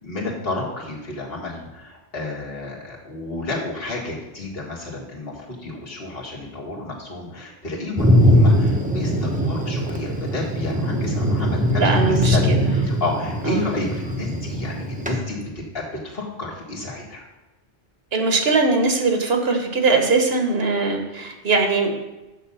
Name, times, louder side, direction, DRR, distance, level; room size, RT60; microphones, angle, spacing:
voice 1, 0.0-11.8 12.1-15.4 15.7-17.2, left 2 dB, 65° left, -3 dB, 1.9 m, -31 dB
Thunder, 8.0-15.2, equal, 10° right, 0.7 m, -21 dB
voice 2, 11.4-12.7 13.5-13.7 18.1-21.9, right 3 dB, 75° right, 4 dB, 1.4 m, -21 dB
6.6 x 6.4 x 5.5 m, 1.1 s
omnidirectional pair, 1.1 m